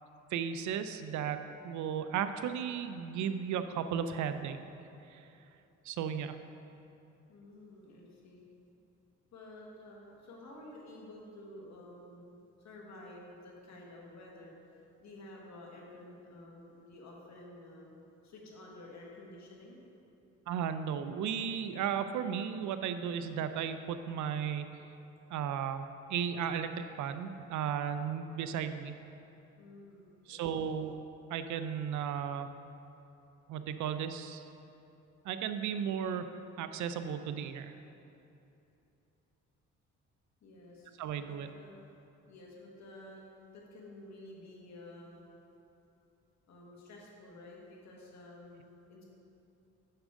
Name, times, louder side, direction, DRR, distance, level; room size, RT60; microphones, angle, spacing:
voice 1, 0.3-4.6 5.1-5.2 5.8-6.4 20.5-24.7 25.3-29.0 30.3-31.0 31.3-32.5 33.5-34.4 35.2-36.3 36.6-37.7 41.0-41.5, right 8 dB, 75° right, 10 dB, 0.5 m, -35 dB
voice 2, 7.3-8.4 9.3-19.8 29.6-30.8 40.4-40.9 41.2-41.9 42.3-43.3 43.5-45.3 46.5-49.0, left 1 dB, 65° left, -2 dB, 1.7 m, -51 dB
8.7 x 6.1 x 3.7 m, 2.8 s
cardioid pair, 90°, 30 cm